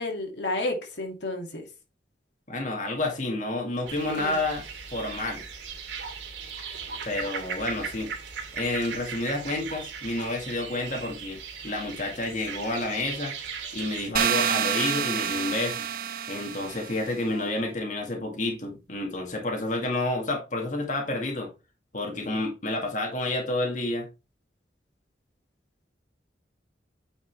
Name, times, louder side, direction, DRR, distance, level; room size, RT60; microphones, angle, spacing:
voice 1, 0.0-1.7 3.9-4.4 17.3-17.5, left 2 dB, 80° left, 2.6 m, -32 dB
voice 2, 2.5-4.6 4.9-5.4 7.1-8.1 8.5-11.4 11.6-13.4 13.7-15.8 16.3-21.5 21.9-24.1, left 2 dB, 45° left, 2.0 m, -29 dB
sound 1, 3.9-14.1, right 6 dB, 80° right, 3.0 m, -38 dB
sound 2, 14.2-17.0, right 8 dB, 55° right, 0.6 m, -28 dB
9.3 x 5.4 x 3.4 m
head